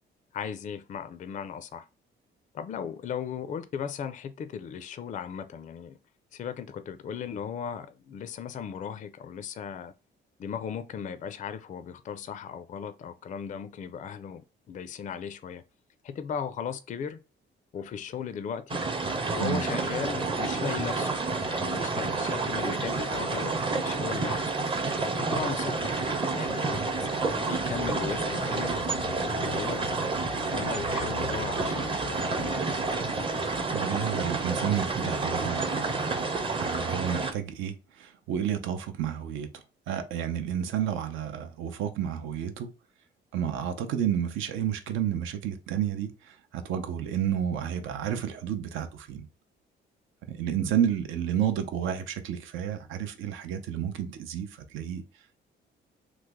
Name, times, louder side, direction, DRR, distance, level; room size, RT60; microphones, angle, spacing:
voice 1, 0.3-1.9 2.5-6.0 6.3-9.9 10.4-14.4 14.7-15.6 16.0-17.2 17.7-18.8 19.3-21.2 21.4-24.5 25.2-28.7 29.0-29.9 30.5-32.9, left 7 dB, 40° left, 0.4 m, -37 dB
sound 1, 18.7-37.3, right 3 dB, 25° right, 0.6 m, -29 dB
sound 2, 27.6-33.0, left 7 dB, 85° left, 0.6 m, -43 dB
voice 2, 33.7-36.2 36.5-39.5 39.9-42.7 43.3-49.3 50.3-55.0, right 9 dB, 85° right, 0.6 m, -31 dB
3.2 x 2.0 x 3.5 m
cardioid pair, 90°, 20 cm